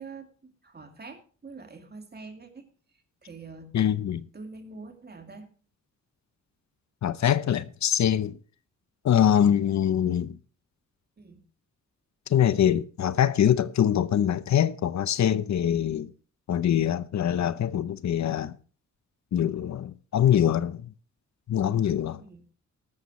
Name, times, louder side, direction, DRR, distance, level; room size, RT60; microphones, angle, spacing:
voice 1, 0.0-2.7 3.2-3.7 4.3-5.5 11.2-11.4 22.2-22.5, right 4 dB, 35° right, 2.6 m, -45 dB
voice 2, 3.7-4.3 7.0-8.4 9.0-10.4 12.3-16.1 16.5-18.5 19.3-20.9 21.5-22.2, left 10 dB, 65° left, 0.8 m, -24 dB
14.5 x 12.5 x 3.1 m
wide cardioid pair, 130°, 30 cm